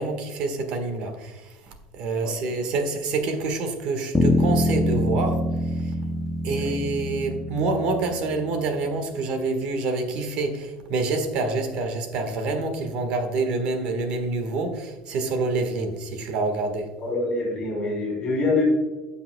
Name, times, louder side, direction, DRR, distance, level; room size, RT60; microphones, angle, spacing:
voice 1, 0.0-1.5 1.9-5.4 6.4-16.8, right 3 dB, 50° right, 6 dB, 1.5 m, -27 dB
sound 1, 4.1-8.5, left 1 dB, 5° left, 0.6 m, -25 dB
voice 2, 17.0-18.6, left 3 dB, 30° left, -1 dB, 2.6 m, -26 dB
15.5 x 5.8 x 2.3 m, 1.2 s
cardioid pair, 160°, 2 cm